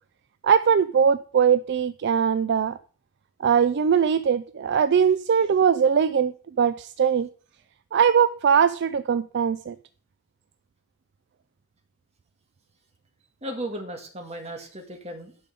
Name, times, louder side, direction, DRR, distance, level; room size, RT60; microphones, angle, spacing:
voice 1, 0.4-2.8 3.4-7.3 7.9-9.8, right 7 dB, 55° right, 13 dB, 0.4 m, -21 dB
voice 2, 13.4-15.5, right 1 dB, 30° right, 3 dB, 1.7 m, -36 dB
11.0 x 5.4 x 5.2 m, 0.43 s
head